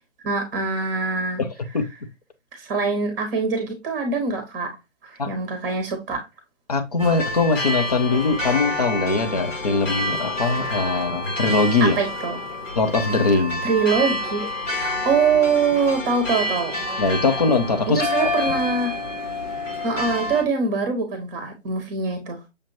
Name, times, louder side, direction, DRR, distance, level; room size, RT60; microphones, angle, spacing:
voice 1, 0.2-1.4 2.5-4.7 5.0-6.2 11.8-12.4 13.6-14.5 14.7-16.7 17.9-19.0 19.8-22.4, right 5 dB, 15° right, 1.1 m, -24 dB
voice 2, 6.7-12.0 12.8-13.6 17.0-18.0, left 3 dB, 30° left, 0.6 m, -21 dB
sound 1, 7.0-20.4, left 1 dB, 80° left, 2.0 m, -28 dB
6.4 x 2.8 x 2.6 m
figure-of-eight pair, 145°, 37 cm